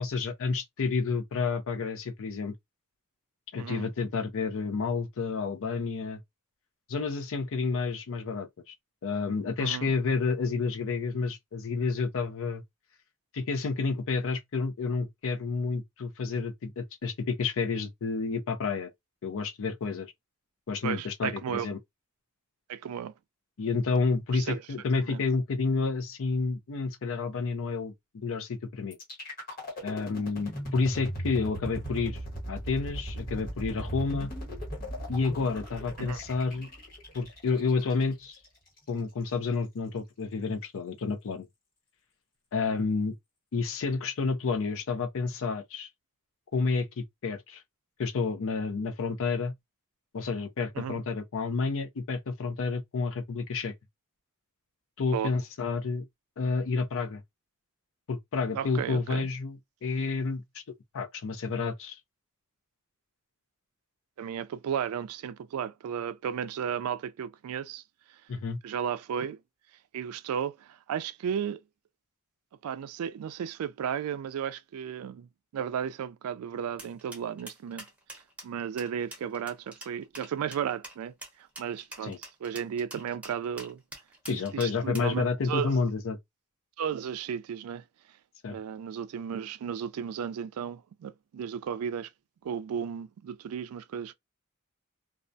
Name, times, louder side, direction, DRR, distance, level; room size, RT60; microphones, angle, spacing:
voice 1, 0.0-2.5 3.5-6.2 6.9-8.7 9.0-12.6 13.3-18.9 19.2-20.1 20.7-21.8 23.6-29.0 29.8-32.2 32.5-34.3 35.1-36.7 37.1-38.3 38.9-41.5 42.5-43.2 43.5-45.9 46.5-47.6 48.0-49.5 50.1-53.7 55.0-56.0 56.4-57.2 58.1-60.6 60.9-62.0 68.3-68.6 82.0-82.2 84.3-86.2 88.4-88.6, left 4 dB, 65° left, 0.5 m, -30 dB
voice 2, 3.6-3.9 9.6-9.9 20.8-21.7 22.7-23.1 24.3-24.6 25.0-25.2 36.0-36.2 50.8-51.0 55.1-55.3 58.5-59.3 64.2-67.8 68.1-68.2 68.6-69.4 69.9-71.6 72.6-77.9 78.4-82.1 82.4-83.8 84.3-85.7 86.8-87.8 88.5-92.1 92.4-94.1, right 8 dB, 70° right, 0.3 m, -34 dB
sound 1, 28.9-38.9, equal, 45° left, 1.4 m, -38 dB
sound 2, 76.8-85.2, right 1 dB, 5° right, 0.9 m, -45 dB
2.3 x 2.1 x 2.6 m
head